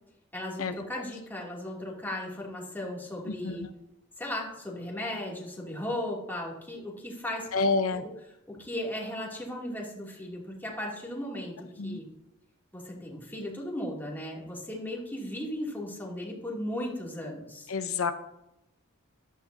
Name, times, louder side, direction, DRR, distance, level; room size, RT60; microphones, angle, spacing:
voice 1, 0.3-3.6 4.2-8.1 8.5-12.1 12.7-17.7, left 1 dB, 10° left, -3 dB, 2.6 m, -36 dB
voice 2, 7.5-8.0 11.8-12.0 17.7-18.1, left 4 dB, 80° left, 8 dB, 0.7 m, -27 dB
14.0 x 11.0 x 2.7 m, 0.85 s
head